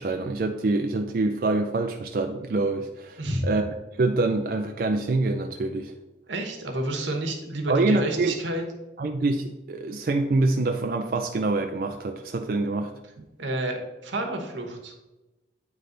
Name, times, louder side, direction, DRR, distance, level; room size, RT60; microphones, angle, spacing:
voice 1, 0.0-3.7 4.0-5.9 7.7-8.4 9.0-12.9 13.2-13.3, right 2 dB, 50° right, 4 dB, 0.4 m, -25 dB
voice 2, 6.3-8.6 13.4-14.9, right 1 dB, 90° right, 3 dB, 1.1 m, -30 dB
9.3 x 3.2 x 3.9 m, 1.0 s
head